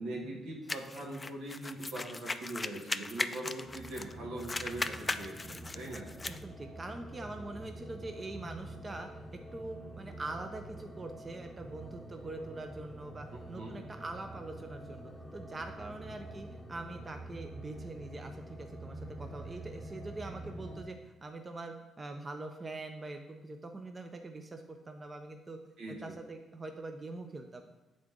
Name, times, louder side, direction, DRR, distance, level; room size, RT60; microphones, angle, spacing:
voice 1, 0.0-6.1 13.5-13.8 25.8-26.1, right 1 dB, 90° right, -3 dB, 1.8 m, -41 dB
sound 1, 0.7-4.1 4.4-6.4, left 3 dB, 20° left, 0.3 m, -38 dB
sound 2, 3.4-20.8, right 1 dB, ahead, 1.2 m, -47 dB
voice 2, 6.3-9.1 9.5-25.6 25.9-27.6, right 2 dB, 25° right, 5 dB, 0.6 m, -43 dB
8.5 x 3.8 x 3.6 m, 1.1 s
cardioid pair, 90°, 0 cm